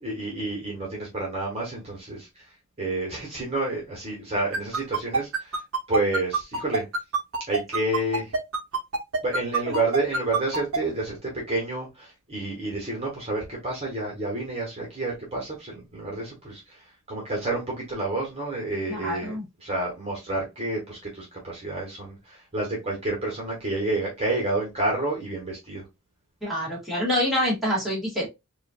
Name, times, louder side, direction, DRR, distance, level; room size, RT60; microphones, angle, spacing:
voice 1, 0.0-2.5 2.8-5.6 5.9-6.8 7.5-8.3 9.2-25.8, right 2 dB, 30° right, 1.4 m, -29 dB
sound 1, 4.5-10.8, right 4 dB, 75° right, 0.9 m, -25 dB
voice 2, 18.9-19.4 26.4-28.3, equal, ahead, 2.0 m, -26 dB
4.8 x 2.6 x 2.5 m
head